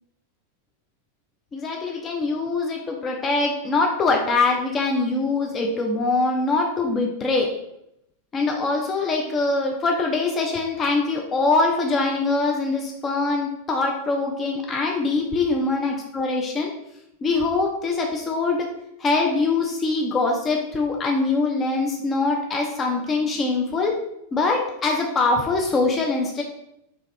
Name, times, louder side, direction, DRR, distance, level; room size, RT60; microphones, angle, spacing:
voice 1, 1.5-7.5 8.3-16.7 17.2-18.7 19.0-24.0 24.3-26.4, left 3 dB, 25° left, 1 dB, 0.4 m, -23 dB
2.6 x 2.3 x 3.2 m, 0.81 s
figure-of-eight pair, 90°, 0 cm